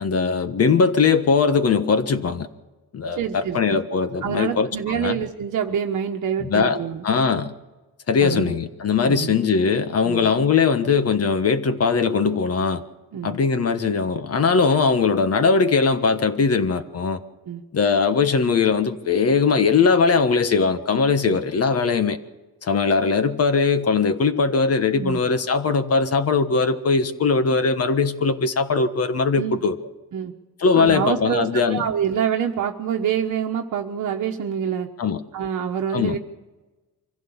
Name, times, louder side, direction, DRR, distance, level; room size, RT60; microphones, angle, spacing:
voice 1, 0.0-2.5 2.9-5.2 6.4-6.8 7.0-7.5 8.1-12.8 13.2-17.2 17.7-22.2 22.6-29.8 30.6-31.8 35.0-35.2 35.9-36.2, left 5 dB, 40° left, 1.4 m, -20 dB
voice 2, 3.2-3.8 4.2-7.1 8.2-8.6 9.0-9.4 10.0-10.3 13.1-13.4 17.5-17.6 21.2-21.4 25.0-25.2 29.4-29.6 30.1-30.3 30.7-34.9 35.3-36.2, right 8 dB, 55° right, 1.3 m, -26 dB
24.5 x 15.5 x 7.2 m
cardioid pair, 130°, 37 cm